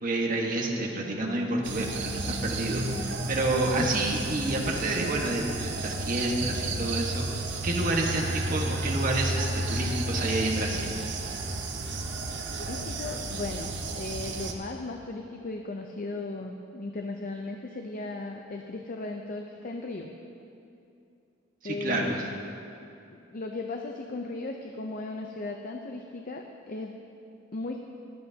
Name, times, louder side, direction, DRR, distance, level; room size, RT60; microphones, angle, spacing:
voice 1, 0.0-10.9 21.6-22.2, right 2 dB, 45° right, -1 dB, 1.4 m, -29 dB
sound 1, 1.6-14.5, right 2 dB, 65° right, 0.9 m, -32 dB
voice 2, 3.6-4.0 12.6-20.1 21.6-22.2 23.1-27.0 27.5-27.8, left 2 dB, 45° left, 3 dB, 0.6 m, -36 dB
22.5 x 7.9 x 2.8 m, 2.6 s
head